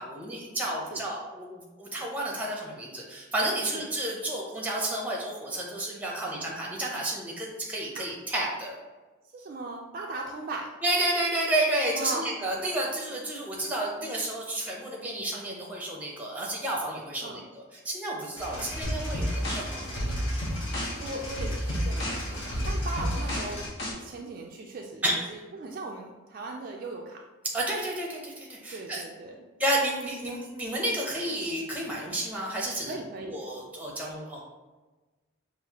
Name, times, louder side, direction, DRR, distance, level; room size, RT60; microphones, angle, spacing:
voice 1, 0.0-8.8 10.8-17.4 17.8-19.8 25.0-25.1 27.5-29.0 29.6-33.0 33.3-34.4, right 1 dB, 5° right, -2 dB, 0.7 m, -31 dB
voice 2, 9.3-10.7 11.9-12.3 17.2-17.4 18.5-18.7 21.0-23.7 24.0-27.2 28.7-29.4 32.8-33.4, right 2 dB, 45° right, 0 dB, 0.3 m, -38 dB
sound 1, 18.4-23.7, equal, 65° left, 1.4 m, -38 dB
sound 2, 18.8-23.9, equal, 50° left, 1.0 m, -30 dB
5.5 x 2.5 x 2.9 m, 1.2 s
head